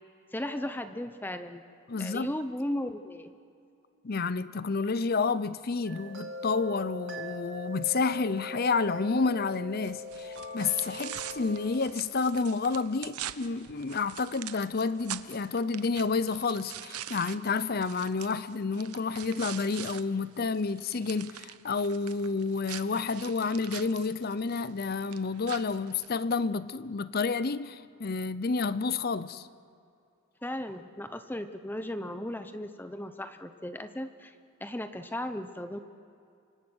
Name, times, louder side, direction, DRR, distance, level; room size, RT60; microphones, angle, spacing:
voice 1, 0.3-1.6 2.0-3.3 30.4-34.3 34.6-35.8, left 1 dB, 10° left, 0.8 m, -36 dB
voice 2, 1.9-2.3 4.0-29.5, left 4 dB, 45° left, 0.6 m, -30 dB
sound 1, 5.9-11.6, left 2 dB, 55° right, 2.4 m, -40 dB
sound 2, 9.8-20.0 20.4-26.4, right 11 dB, 90° right, 0.9 m, -44 dB
28.5 x 25.0 x 6.3 m
head